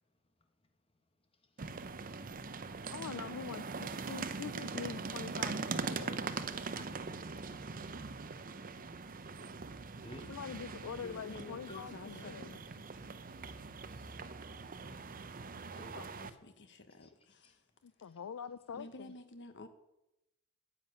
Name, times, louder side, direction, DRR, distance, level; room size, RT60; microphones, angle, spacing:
sound 1, 1.6-16.3, right 4 dB, 40° right, 0.7 m, -42 dB
voice 1, 2.9-6.2 10.3-12.6 15.9-16.1 17.8-19.1, left 7 dB, 70° left, 14 dB, 0.4 m, -44 dB
voice 2, 6.7-7.8 10.0-10.3 11.7-11.8 14.0-14.3 15.7-16.0 17.0-17.1 17.4-17.5, left 2 dB, 25° left, 6 dB, 1.4 m, -54 dB
voice 3, 11.0-12.4 12.7-12.8 13.2-13.3 15.5-15.6 16.2-17.6 18.7-19.7, left 2 dB, 55° left, 10 dB, 1.2 m, -51 dB
10.0 x 7.5 x 9.3 m, 0.91 s
head